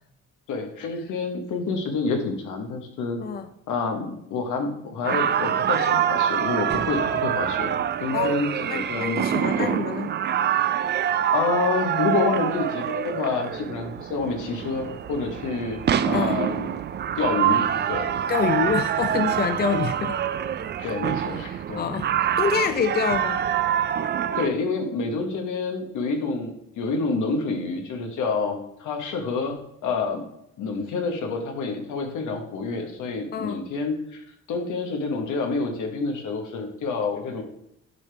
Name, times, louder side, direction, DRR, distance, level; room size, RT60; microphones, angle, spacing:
voice 1, 0.5-3.2 3.7-9.3 9.6-9.7 11.3-16.7 17.1-18.1 20.8-21.9 24.4-29.6 29.8-30.2 30.6-37.4, left 4 dB, 80° left, 3 dB, 1.3 m, -28 dB
sound 1, 5.0-24.5, right 9 dB, 35° right, 0.4 m, -25 dB
voice 2, 8.7-10.1 16.1-16.4 18.3-20.2 21.5-23.4 33.3-33.6, left 6 dB, 30° left, 9 dB, 0.5 m, -26 dB
8.3 x 5.1 x 3.4 m, 0.78 s
cardioid pair, 90°, 30 cm